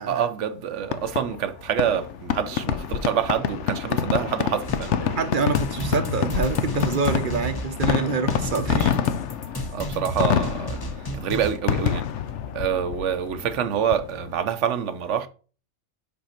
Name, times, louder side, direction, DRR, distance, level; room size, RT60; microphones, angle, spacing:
voice 1, 0.0-5.2 9.7-10.8 11.2-12.1 12.5-15.3, right 8 dB, 80° right, 1.0 m, -26 dB
Fireworks, 0.8-14.4, left 8 dB, 75° left, 0.9 m, -27 dB
sound 1, 4.6-11.6, equal, 25° left, 0.7 m, -32 dB
voice 2, 5.1-9.0, right 4 dB, 50° right, 0.8 m, -26 dB
5.5 x 5.4 x 4.3 m
omnidirectional pair, 1.2 m